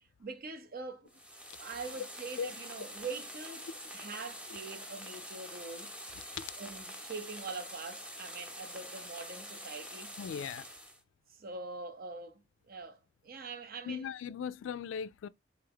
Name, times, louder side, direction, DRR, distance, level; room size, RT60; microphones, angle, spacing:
voice 1, 0.2-1.2 1.6-3.7 3.9-5.9 6.6-10.1 11.3-12.4 12.7-14.1, right 4 dB, 50° right, 0.6 m, -43 dB
sound 1, 1.1-11.0, equal, 5° right, 0.8 m, -46 dB
voice 2, 10.2-10.6 13.9-15.3, left 7 dB, 75° left, 0.3 m, -38 dB
3.9 x 3.4 x 3.5 m
head